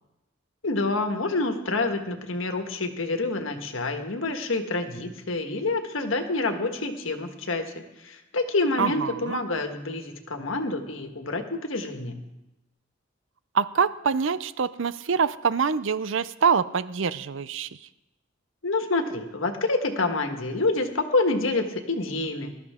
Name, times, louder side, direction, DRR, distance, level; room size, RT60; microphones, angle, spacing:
voice 1, 0.6-12.2 18.6-22.5, left 2 dB, 80° left, 6 dB, 1.5 m, -27 dB
voice 2, 8.8-9.4 13.5-17.7, right 6 dB, 70° right, 15 dB, 0.6 m, -25 dB
20.0 x 12.5 x 3.7 m, 0.97 s
head